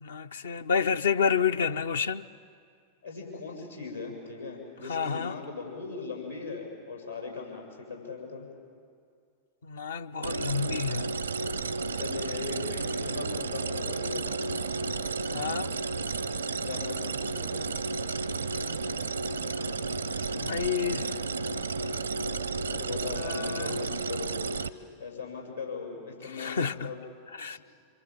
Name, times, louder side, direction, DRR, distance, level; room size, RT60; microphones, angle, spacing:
voice 1, 0.0-2.2 4.9-5.3 9.6-11.1 15.3-15.7 20.4-21.1 23.1-23.8 26.4-26.9 27.4-27.6, left 6 dB, 65° left, 0.6 m, -29 dB
voice 2, 3.0-8.5 11.9-14.5 16.6-17.6 22.7-24.3 25.0-27.0 27.5-27.6, left 4 dB, 90° left, 6.7 m, -39 dB
sound 1, 10.2-24.7, right 4 dB, 75° right, 0.7 m, -32 dB
26.5 x 24.5 x 7.6 m
figure-of-eight pair, 90°, 0 cm